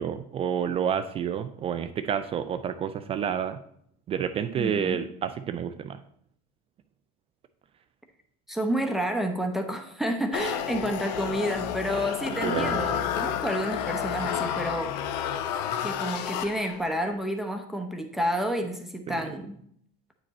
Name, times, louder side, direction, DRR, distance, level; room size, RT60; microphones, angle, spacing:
voice 1, 0.0-3.6 4.1-6.0 12.4-12.9 19.1-19.2, right 8 dB, 30° right, 10 dB, 0.4 m, -29 dB
voice 2, 4.5-5.0 8.5-14.9 15.8-19.6, equal, ahead, 4 dB, 0.8 m, -30 dB
sound 1, 10.3-16.9, left 9 dB, 85° left, 0.7 m, -30 dB
8.9 x 5.1 x 4.2 m, 0.68 s
supercardioid pair, 135°, 21 cm